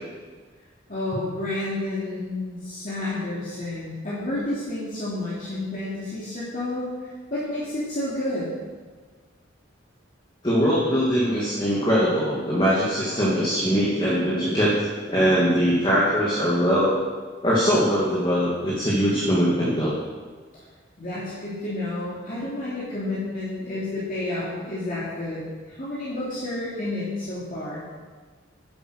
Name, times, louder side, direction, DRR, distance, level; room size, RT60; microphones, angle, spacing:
voice 1, 0.9-8.5 21.0-27.8, left 2 dB, 45° left, -9 dB, 2.9 m, -30 dB
voice 2, 10.4-14.7 15.1-17.0 17.4-20.0, equal, 25° left, -7 dB, 2.1 m, -21 dB
10.5 x 8.2 x 6.4 m, 1.5 s
head